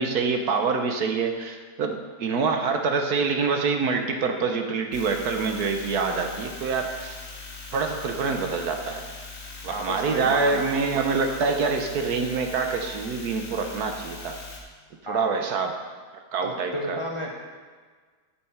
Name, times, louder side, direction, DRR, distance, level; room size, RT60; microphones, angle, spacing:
voice 1, 0.0-7.1 7.7-9.1 9.6-14.3 15.1-15.7 16.3-17.0, right 4 dB, 70° right, 4 dB, 1.4 m, -26 dB
sound 1, 4.9-14.6, left 4 dB, 40° left, 1.8 m, -40 dB
voice 2, 9.7-10.6 15.1-15.3 16.4-17.3, equal, 25° left, -1 dB, 0.8 m, -32 dB
8.3 x 7.6 x 5.7 m, 1.5 s
omnidirectional pair, 1.7 m